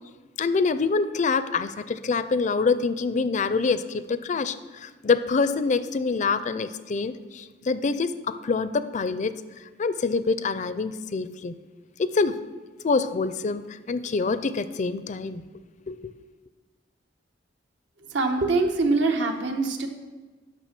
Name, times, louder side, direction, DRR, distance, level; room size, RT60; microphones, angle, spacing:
voice 1, 0.4-9.3 9.8-11.5 12.0-12.4 12.8-15.4 15.9-16.1, left 4 dB, 40° left, 13 dB, 0.4 m, -26 dB
voice 2, 18.1-19.9, right 3 dB, 75° right, 4 dB, 1.1 m, -23 dB
10.5 x 6.0 x 5.9 m, 1.3 s
head